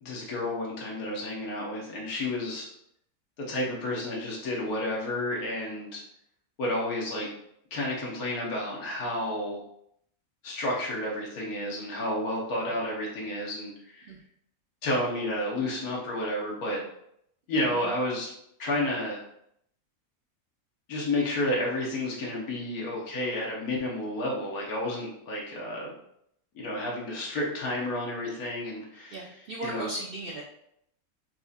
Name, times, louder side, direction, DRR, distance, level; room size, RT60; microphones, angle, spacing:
voice 1, 0.0-2.7 3.4-6.0 6.6-7.3 7.7-9.6 10.4-14.1 14.8-16.8 17.5-18.3 18.6-19.2 20.9-25.9 26.5-29.1 29.6-29.9, left 1 dB, 90° left, -3 dB, 1.5 m, -31 dB
voice 2, 17.5-17.9 29.1-30.4, right 2 dB, 60° right, -3 dB, 0.6 m, -37 dB
4.6 x 2.4 x 4.0 m, 0.73 s
omnidirectional pair, 1.5 m